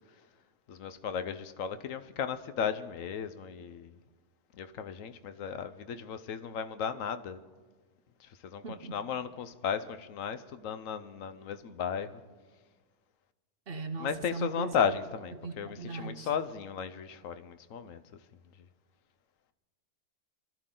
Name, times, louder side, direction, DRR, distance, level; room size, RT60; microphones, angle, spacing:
voice 1, 0.7-3.9 4.5-7.4 8.2-12.2 14.0-18.0, left 7 dB, 85° left, 1.1 m, -35 dB
voice 2, 8.6-9.0 13.7-14.8 15.4-16.3, right 4 dB, 50° right, 1.1 m, -39 dB
25.5 x 12.0 x 3.8 m
omnidirectional pair, 1.3 m